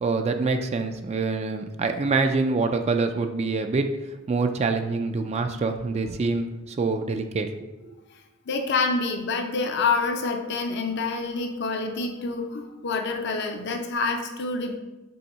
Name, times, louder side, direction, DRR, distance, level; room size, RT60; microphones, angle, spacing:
voice 1, 0.0-3.9 4.3-7.5 7.9-8.0, right 3 dB, 30° right, 6 dB, 0.3 m, -25 dB
voice 2, 8.5-14.8, left 4 dB, 55° left, 4 dB, 0.6 m, -27 dB
5.5 x 3.6 x 5.3 m, 1.1 s
head